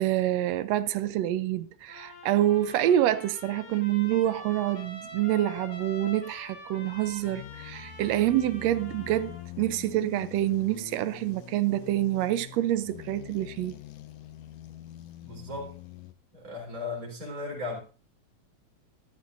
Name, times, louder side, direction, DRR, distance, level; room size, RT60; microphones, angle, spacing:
voice 1, 0.0-13.8, right 13 dB, 75° right, 1.7 m, -27 dB
Trumpet, 1.9-9.5, left 2 dB, 45° left, 3.8 m, -45 dB
sound 1, 4.0-5.7 6.3-16.1, left 11 dB, 70° left, 1.8 m, -46 dB
voice 2, 15.2-15.8 16.3-17.8, left 3 dB, 25° right, 4.5 m, -36 dB
14.0 x 12.5 x 2.6 m
omnidirectional pair, 3.3 m